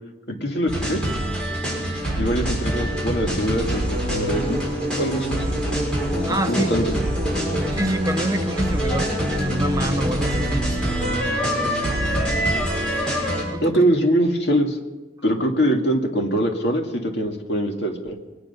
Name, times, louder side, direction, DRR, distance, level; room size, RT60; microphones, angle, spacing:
voice 1, 0.4-1.0 2.2-4.6 5.0-5.5 6.1-6.8 13.6-14.8 15.2-18.2, equal, 65° left, 2 dB, 2.1 m, -23 dB
sound 1, 0.7-13.4, equal, 5° left, 5.8 m, -24 dB
voice 2, 6.3-6.7 7.7-11.8 13.5-13.8, right 1 dB, 20° right, 9 dB, 0.5 m, -27 dB
23.5 x 10.5 x 5.6 m, 1.2 s
head